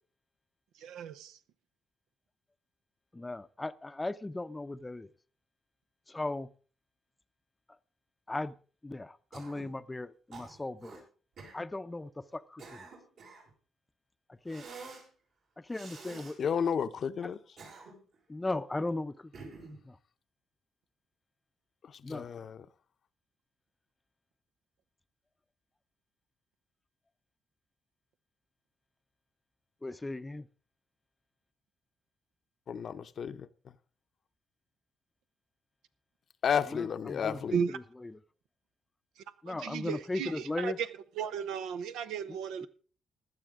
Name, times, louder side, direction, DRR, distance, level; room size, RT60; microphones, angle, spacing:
voice 1, 0.7-1.4 37.5-37.8 39.2-40.9 41.1-42.7, right 7 dB, 90° right, 0.7 m, -35 dB
voice 2, 3.1-5.1 6.1-6.5 8.3-8.5 8.8-11.0 11.5-12.9 14.4-14.6 15.7-16.4 17.2-17.3 18.3-19.6 19.9-20.0 22.0-22.3 29.8-30.5 36.7-38.1 39.4-40.8, left 2 dB, 15° left, 0.6 m, -37 dB
Cough, 9.3-9.8 10.3-11.0 11.4-11.6 12.3-13.5 14.5-15.1 15.7-16.4 17.3-18.2 19.3-19.8, right 4 dB, 70° right, 5.9 m, -48 dB
voice 3, 16.4-17.4 22.0-22.7 32.7-33.5 36.4-37.6, left 7 dB, 55° left, 0.7 m, -32 dB
16.0 x 11.5 x 3.7 m
cardioid pair, 90°, 0 cm